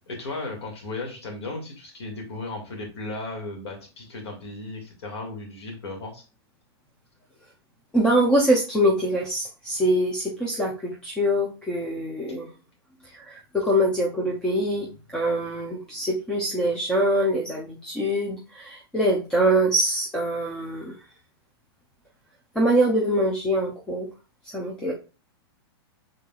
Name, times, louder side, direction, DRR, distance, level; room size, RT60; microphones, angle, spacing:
voice 1, 0.1-6.2, left 2 dB, 85° left, 1 dB, 2.1 m, -35 dB
voice 2, 7.9-12.5 13.1-20.9 22.5-24.1 24.5-24.9, right 1 dB, 5° left, -2 dB, 0.5 m, -24 dB
5.6 x 3.7 x 2.3 m, 0.33 s
supercardioid pair, 170°, 13 cm